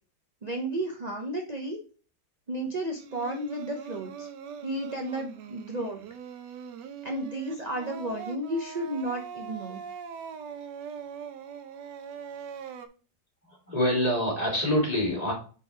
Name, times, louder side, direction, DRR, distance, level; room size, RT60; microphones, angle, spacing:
voice 1, 0.4-1.8 2.5-4.3 4.6-6.0 7.0-9.8, right 1 dB, 50° right, 1 dB, 0.5 m, -33 dB
Singing, 3.0-12.9, right 7 dB, 75° right, 1.3 m, -41 dB
voice 2, 13.5-15.3, left 1 dB, 20° left, -2 dB, 2.6 m, -26 dB
4.9 x 4.8 x 4.7 m, 0.38 s
omnidirectional pair, 2.0 m